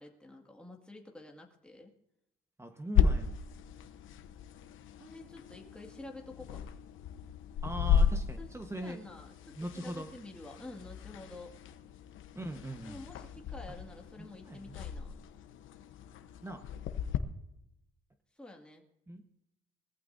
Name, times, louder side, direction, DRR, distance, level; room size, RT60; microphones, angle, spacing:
voice 1, 0.0-1.9 5.0-6.6 8.4-8.5 8.8-11.6 12.9-15.2 18.4-18.8, left 2 dB, 5° left, 1 dB, 2.1 m, -49 dB
voice 2, 2.6-3.4 7.6-9.0 9.6-10.1 12.3-13.0 14.2-14.8 16.4-16.6 19.1-19.2, right 1 dB, 15° right, 5 dB, 1.2 m, -40 dB
sound 1, 2.9-17.2, left 7 dB, 85° left, 1.0 m, -34 dB
20.5 x 14.5 x 2.7 m, 0.84 s
cardioid pair, 90°, 20 cm